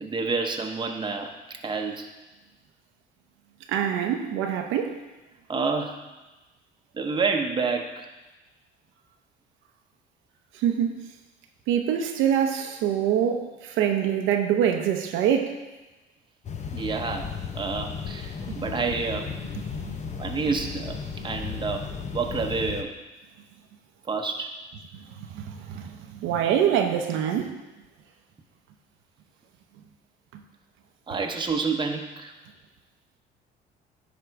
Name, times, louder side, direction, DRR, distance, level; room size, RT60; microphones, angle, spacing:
voice 1, 0.0-2.1 5.5-6.0 6.9-8.1 16.7-19.3 20.2-21.0 21.2-22.9 24.1-24.6 31.1-32.3, right 4 dB, 25° right, 4 dB, 0.9 m, -29 dB
voice 2, 3.7-5.0 10.6-11.0 11.7-15.6 18.5-18.6 19.8-19.9 24.9-27.6 30.3-30.4, right 9 dB, 85° right, 4 dB, 0.8 m, -25 dB
sound 1, 16.4-22.8, left 6 dB, 35° left, 0.8 m, -35 dB
10.5 x 3.7 x 4.7 m, 1.1 s
supercardioid pair, 90°, 20 cm